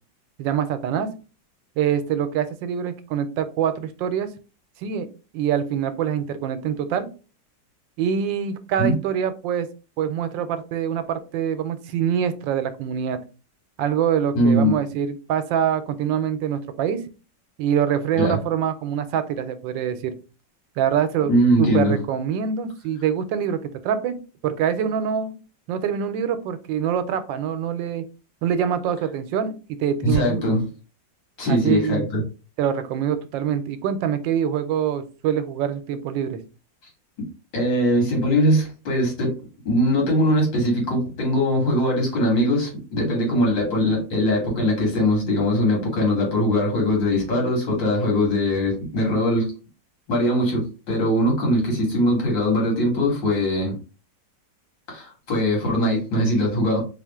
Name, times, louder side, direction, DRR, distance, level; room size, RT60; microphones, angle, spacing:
voice 1, 0.4-1.1 1.8-4.3 4.8-7.1 8.0-9.7 10.0-13.2 13.8-17.0 17.6-20.1 20.8-24.2 24.4-25.4 25.7-28.1 28.4-30.6 31.5-32.1 32.6-36.4, right 8 dB, 90° right, 11 dB, 1.3 m, -25 dB
voice 2, 14.3-14.7 18.2-18.4 21.3-21.9 30.0-30.7 31.4-32.2 37.5-39.4 39.7-49.5 50.1-53.7 54.9-56.8, equal, 85° left, -1 dB, 2.5 m, -21 dB
4.2 x 2.5 x 3.5 m, 0.34 s
omnidirectional pair, 2.0 m